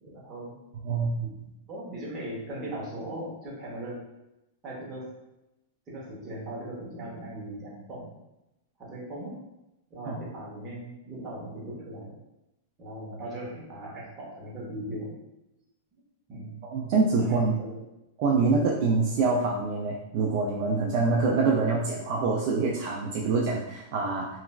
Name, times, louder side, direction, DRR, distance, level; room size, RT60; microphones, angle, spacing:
voice 1, 0.0-0.6 1.2-1.3 1.7-4.0 4.6-5.1 5.9-8.1 8.8-9.3 9.9-12.2 12.8-15.1 15.9-16.0 16.3-16.6 17.2-17.8, right 1 dB, 20° right, -6 dB, 0.8 m, -39 dB
voice 2, 0.8-1.3 10.1-10.2 16.7-17.5 18.2-24.3, right 4 dB, 40° right, -3 dB, 0.3 m, -25 dB
3.0 x 2.4 x 2.3 m, 0.91 s
supercardioid pair, 170°, 0 cm